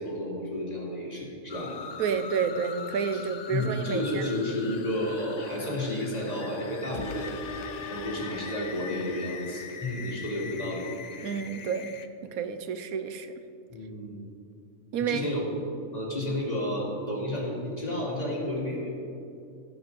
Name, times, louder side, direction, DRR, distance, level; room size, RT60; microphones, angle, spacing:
voice 1, 0.0-1.7 3.1-3.2 3.5-7.3 7.9-10.9 13.7-14.2 15.1-15.6 15.9-18.9, left 1 dB, 25° left, -4 dB, 2.6 m, -31 dB
sound 1, 1.5-12.1, left 6 dB, 70° left, 0.4 m, -42 dB
voice 2, 2.0-4.3 7.0-7.1 11.2-11.9 12.2-13.3 14.9-15.3, right 6 dB, 80° right, 10 dB, 1.1 m, -30 dB
sound 2, 6.9-9.9 10.4-10.5, left 3 dB, 50° left, 0.7 m, -40 dB
16.0 x 6.9 x 5.3 m, 2.5 s
omnidirectional pair, 1.5 m